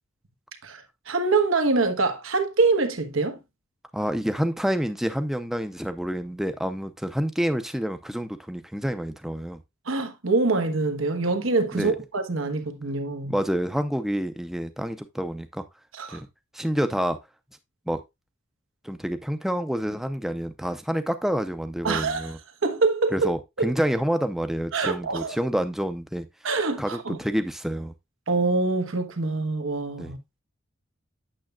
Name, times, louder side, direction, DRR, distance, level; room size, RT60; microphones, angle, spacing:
voice 1, 0.6-3.4 9.9-13.4 15.9-16.2 21.8-22.3 22.6-23.3 24.7-25.4 26.4-27.2 28.3-30.2, right 3 dB, 80° right, 1.2 m, -25 dB
voice 2, 3.9-9.6 11.7-12.0 13.3-15.6 16.1-16.3 16.5-17.2 17.9-18.0 18.8-22.4 23.1-26.3 26.8-27.9 30.0-30.1, equal, ahead, 0.5 m, -28 dB
8.8 x 6.9 x 2.3 m
head